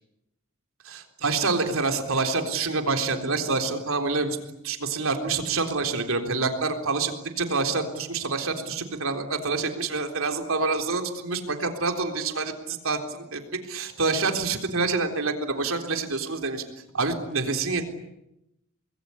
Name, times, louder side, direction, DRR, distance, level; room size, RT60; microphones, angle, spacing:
voice 1, 0.8-4.4 4.6-16.6 16.9-17.8, right 4 dB, 70° right, 5 dB, 3.8 m, -27 dB
26.0 x 21.0 x 9.8 m, 0.87 s
head